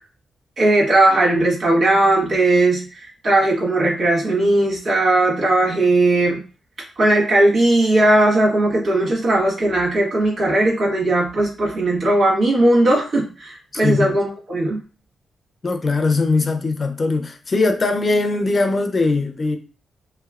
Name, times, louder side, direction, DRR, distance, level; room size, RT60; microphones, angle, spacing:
voice 1, 0.6-6.4 7.0-14.8, right 1 dB, 50° right, 1.3 m, -17 dB
voice 2, 15.6-19.6, left 3 dB, 30° left, 0.4 m, -20 dB
3.1 x 3.1 x 2.4 m
wide cardioid pair, 165°, 0 cm